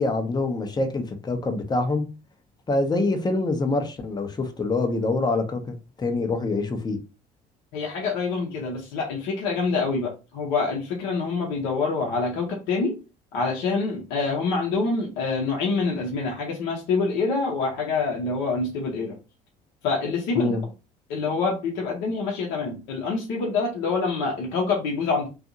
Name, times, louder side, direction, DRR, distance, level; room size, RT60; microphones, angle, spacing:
voice 1, 0.0-2.1 2.7-7.0 20.4-20.6, left 2 dB, 20° left, 0.6 m, -25 dB
voice 2, 7.7-12.9 13.3-19.2 19.8-20.6 21.1-25.3, left 4 dB, 70° left, 0.7 m, -26 dB
2.6 x 2.4 x 2.5 m
hypercardioid pair, 55°, 21 cm